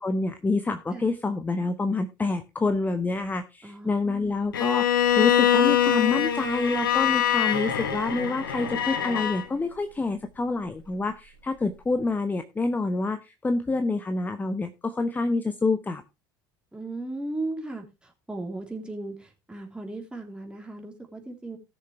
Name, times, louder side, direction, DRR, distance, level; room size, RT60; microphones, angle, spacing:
voice 1, 0.0-16.0, left 3 dB, 15° left, 0.9 m, -27 dB
voice 2, 3.6-4.3 16.7-21.6, right 2 dB, 10° right, 3.1 m, -36 dB
Bowed string instrument, 4.5-9.4, left 10 dB, 75° left, 1.2 m, -24 dB
18.0 x 6.7 x 3.2 m
figure-of-eight pair, 65°, 11 cm